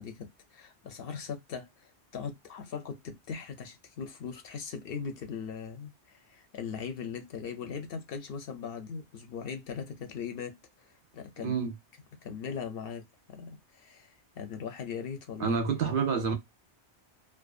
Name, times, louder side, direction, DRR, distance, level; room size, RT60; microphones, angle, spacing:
voice 1, 0.0-10.6 11.1-11.6 12.2-15.6, left 6 dB, 65° left, 0.7 m, -39 dB
voice 2, 11.4-11.7 15.4-16.3, right 6 dB, 60° right, 0.6 m, -28 dB
2.6 x 2.2 x 2.3 m
omnidirectional pair, 1.2 m